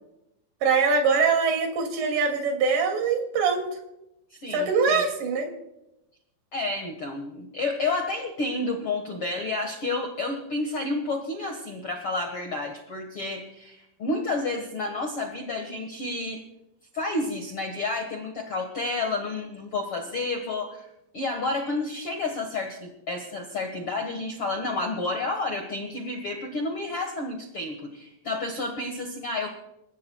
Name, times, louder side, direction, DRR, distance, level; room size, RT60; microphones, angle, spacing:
voice 1, 0.6-3.7 4.5-5.5, right 5 dB, 75° right, 3 dB, 4.8 m, -23 dB
voice 2, 4.3-5.0 6.5-16.4 16.9-20.9 21.1-29.5, left 2 dB, 70° left, 3 dB, 1.3 m, -30 dB
28.5 x 15.5 x 2.3 m, 0.88 s
omnidirectional pair, 5.1 m